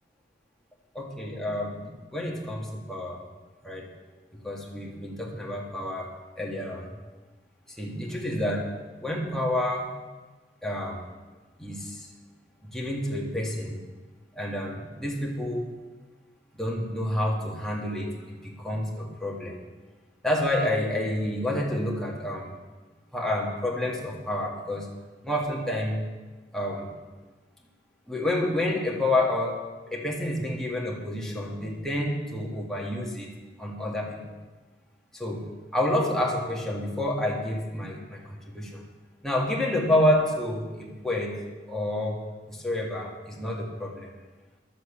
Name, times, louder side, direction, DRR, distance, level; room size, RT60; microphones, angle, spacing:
voice 1, 0.9-3.2 3.6-3.9 4.3-6.1 6.4-6.9 7.8-8.7 9.0-9.9 10.6-11.0 11.6-12.1 12.6-13.8 14.4-15.7 16.5-19.6 20.2-22.5 23.1-24.9 25.2-26.0 26.5-26.9 28.1-33.3 33.6-34.4 35.1-35.4 35.7-38.8 39.2-41.4 41.7-42.2 42.5-44.2, left 1 dB, 5° left, -2 dB, 2.0 m, -29 dB
12.0 x 7.7 x 7.2 m, 1.3 s
head